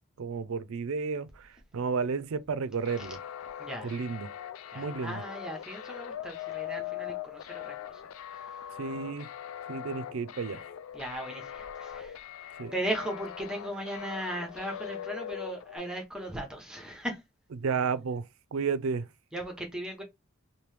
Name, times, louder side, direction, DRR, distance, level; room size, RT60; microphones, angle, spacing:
voice 1, 0.2-3.2 3.8-4.3 4.7-5.2 8.8-9.3 9.7-10.6 12.6-12.7 17.6-18.2 18.5-19.0, right 5 dB, 80° right, 0.4 m, -32 dB
sound 1, 2.8-15.8, left 10 dB, 80° left, 0.3 m, -41 dB
voice 2, 3.6-4.0 4.7-8.0 8.3-8.6 10.9-12.3 12.7-17.2 19.3-20.0, right 1 dB, 5° right, 0.8 m, -37 dB
3.0 x 2.7 x 3.3 m
head